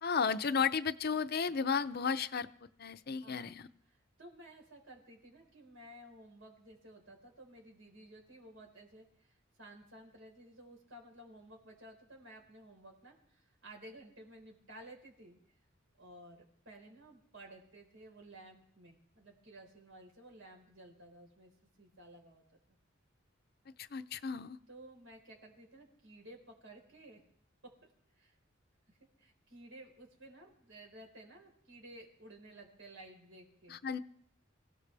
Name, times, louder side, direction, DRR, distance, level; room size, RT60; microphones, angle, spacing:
voice 1, 0.0-2.5 2.8-3.7 23.8-24.6 33.7-34.0, left 6 dB, 50° left, 12 dB, 0.6 m, -33 dB
voice 2, 3.0-3.6 3.8-15.4 16.0-21.5 21.8-22.4 24.7-27.2 27.6-27.7 28.1-28.4 28.9-33.8, right 1 dB, 80° right, 1 dB, 4.2 m, -55 dB
25.0 x 16.5 x 3.4 m, 0.65 s
head